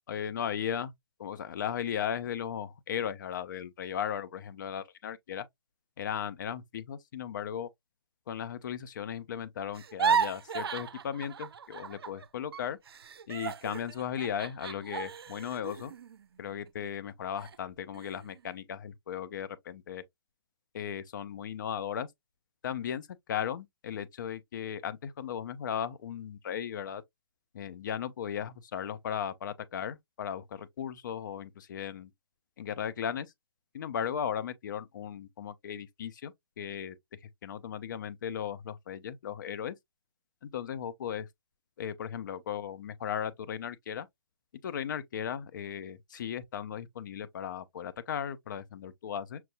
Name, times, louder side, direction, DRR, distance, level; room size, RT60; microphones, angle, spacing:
voice 1, 0.1-0.9 1.2-5.4 6.0-7.7 8.3-12.8 13.3-15.9 16.4-20.0 20.7-22.1 22.6-27.0 27.5-32.1 32.6-33.3 33.7-37.0 37.4-39.8 40.4-41.3 41.8-44.1 44.6-49.4, left 8 dB, 50° left, 0.5 m, -36 dB
sound 1, 9.7-12.3 12.5-16.9 17.4-17.6 17.9-18.4, right 7 dB, 70° right, 0.5 m, -34 dB
5.8 x 2.6 x 2.2 m
hypercardioid pair, 145°, 13 cm